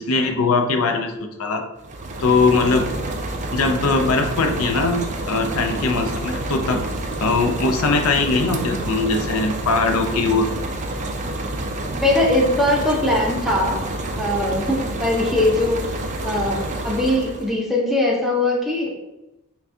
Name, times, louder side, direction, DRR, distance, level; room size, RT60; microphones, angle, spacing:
voice 1, 0.0-1.6 2.2-2.9 3.5-6.8 7.2-10.5, left 3 dB, 70° left, 5 dB, 0.5 m, -20 dB
sound 1, 1.8-17.6, right 2 dB, 35° right, 0.4 m, -28 dB
voice 2, 12.0-13.8 14.2-15.9 16.2-19.0, left 1 dB, ahead, -3 dB, 0.7 m, -21 dB
5.8 x 2.3 x 2.7 m, 0.95 s
head